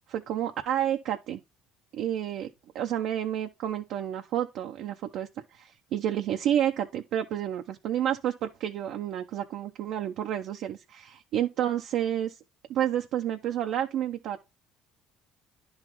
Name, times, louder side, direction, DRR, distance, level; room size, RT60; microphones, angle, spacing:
voice 1, 0.1-1.4 1.9-2.5 2.7-12.4 12.7-14.4, right 10 dB, 65° right, 0.6 m, -30 dB
10.5 x 4.0 x 3.0 m
supercardioid pair, 80°, 0 cm